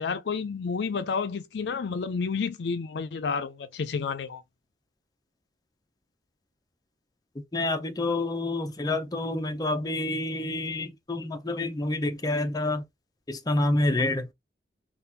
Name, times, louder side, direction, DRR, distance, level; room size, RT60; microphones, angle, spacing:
voice 1, 0.0-4.4, left 5 dB, 70° left, 0.4 m, -30 dB
voice 2, 7.5-12.8 13.3-14.3, left 2 dB, 20° left, 0.5 m, -28 dB
3.7 x 2.4 x 2.7 m
head